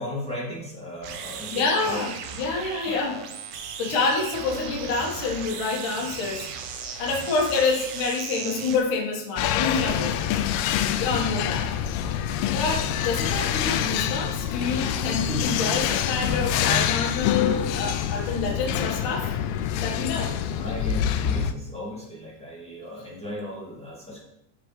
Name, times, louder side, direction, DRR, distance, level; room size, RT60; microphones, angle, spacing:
voice 1, 0.0-2.1 2.9-3.0 20.6-24.2, left 1 dB, 5° left, -6 dB, 1.1 m, -36 dB
sound 1, 1.0-8.8, right 6 dB, 75° right, 1.8 m, -36 dB
voice 2, 1.5-3.2 3.8-6.5 7.0-10.2 10.9-11.7 12.5-19.3 19.8-20.3, left 4 dB, 60° left, -1 dB, 2.8 m, -27 dB
sound 2, 9.4-21.5, left 9 dB, 85° left, 2.5 m, -26 dB
14.5 x 5.1 x 3.2 m, 0.80 s
omnidirectional pair, 4.4 m